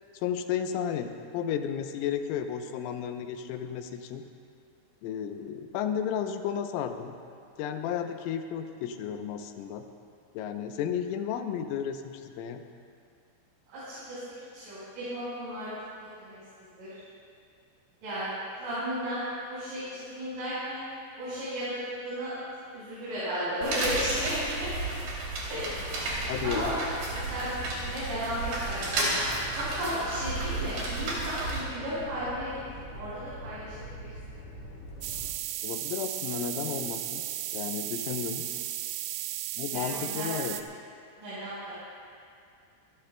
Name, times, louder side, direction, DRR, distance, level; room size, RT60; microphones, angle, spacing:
voice 1, 0.1-4.2 5.0-7.2 7.6-9.8 10.3-12.6 26.3-26.7 35.6-37.2 37.5-38.4 39.6-40.6, left 8 dB, 90° left, 6 dB, 3.3 m, -33 dB
voice 2, 13.7-14.2 14.5-15.8 16.2-17.0 18.0-20.8 21.2-22.4 22.7-24.7 25.5-25.8 26.4-26.8 27.1-27.5 27.8-29.1 29.6-32.6 32.9-34.4 39.7-40.3 41.2-41.7, equal, 75° right, -12 dB, 6.9 m, -34 dB
sound 1, 23.6-31.6, right 2 dB, 55° right, 4.4 m, -32 dB
sound 2, 25.5-35.3, right 1 dB, 70° left, 3.7 m, -44 dB
sound 3, 35.0-40.6, right 13 dB, 90° right, 2.5 m, -35 dB
27.0 x 14.5 x 2.2 m, 2.3 s
omnidirectional pair, 5.6 m